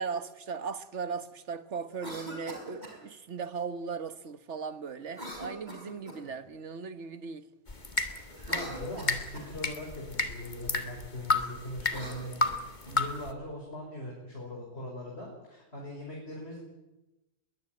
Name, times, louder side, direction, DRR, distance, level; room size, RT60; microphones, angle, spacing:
voice 1, 0.0-7.5, right 5 dB, 85° right, 1.6 m, -37 dB
Cough, 1.9-3.0 5.1-6.4 8.3-9.5 11.8-13.0, equal, 40° right, 4.8 m, -43 dB
sound 1, 7.7-13.3, left 3 dB, 40° left, 2.0 m, -33 dB
voice 2, 8.1-16.6, left 1 dB, 65° left, 5.9 m, -41 dB
21.5 x 19.5 x 9.1 m
omnidirectional pair, 1.2 m